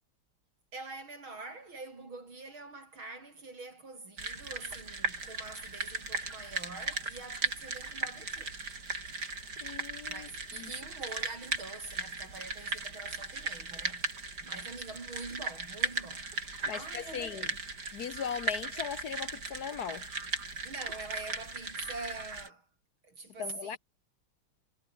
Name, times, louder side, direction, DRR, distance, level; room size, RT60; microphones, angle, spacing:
voice 1, 0.7-8.5 10.1-16.3 16.7-17.6 20.6-22.6 23.0-23.8, right 3 dB, 70° right, 5.8 m, -45 dB
sound 1, 4.2-22.5, right 3 dB, 50° right, 4.7 m, -37 dB
voice 2, 9.6-10.3 10.5-10.7 16.7-17.5 17.9-20.1 23.4-23.8, left 7 dB, 55° left, 1.3 m, -38 dB
omnidirectional pair, 2.3 m